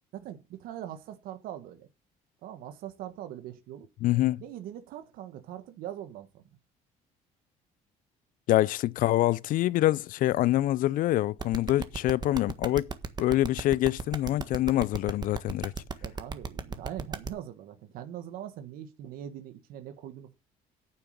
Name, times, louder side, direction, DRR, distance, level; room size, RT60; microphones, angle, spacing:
voice 1, 0.1-1.9 2.4-3.9 4.4-6.5 16.0-20.3, right 11 dB, 75° right, 1.4 m, -42 dB
voice 2, 4.0-4.4 8.5-12.9 13.2-15.7, left 15 dB, 65° left, 0.5 m, -25 dB
sound 1, 11.4-17.3, right 4 dB, 30° right, 1.5 m, -34 dB
9.3 x 7.1 x 6.5 m
supercardioid pair, 85°, 15 cm